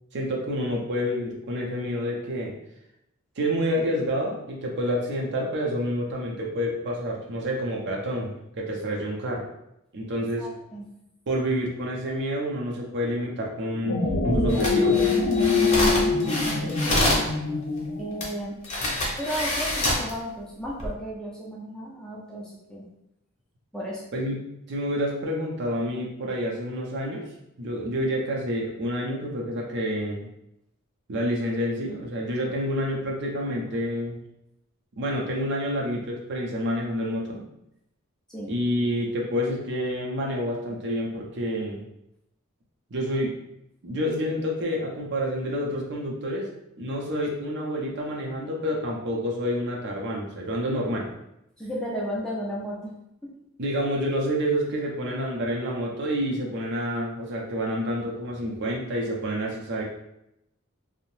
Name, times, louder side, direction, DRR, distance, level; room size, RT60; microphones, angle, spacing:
voice 1, 0.1-2.5 3.4-9.4 9.9-10.5 11.3-15.0 24.1-24.4 24.7-27.2 27.6-30.3 31.1-34.2 35.0-37.4 38.5-41.8 42.9-43.3 43.8-46.5 46.8-51.1 53.6-59.8, equal, 55° right, -1 dB, 0.5 m, -28 dB
voice 2, 10.4-10.9 15.8-17.3 18.0-18.6 19.2-22.9 23.7-24.1 38.3-38.5 51.6-52.9 53.2-53.3, equal, 5° left, -4 dB, 0.3 m, -34 dB
sound 1, 13.7-18.3, left 3 dB, 85° left, 0.4 m, -24 dB
sound 2, 14.5-17.3 18.2-18.3 18.6-20.1 20.7-20.9, left 1 dB, 35° left, 0.7 m, -26 dB
2.6 x 2.0 x 3.0 m, 0.83 s
head